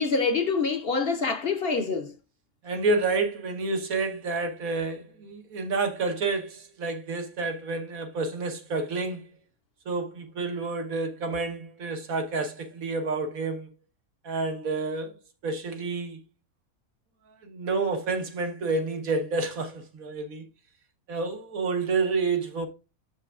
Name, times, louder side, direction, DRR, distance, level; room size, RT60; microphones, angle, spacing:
voice 1, 0.0-2.1, left 4 dB, 50° left, 0.8 m, -26 dB
voice 2, 2.6-9.3 9.8-13.7 14.2-15.2 15.4-16.2 17.4-20.5 21.1-22.7, right 3 dB, 80° right, 1.7 m, -29 dB
6.8 x 6.8 x 2.4 m
omnidirectional pair, 1.5 m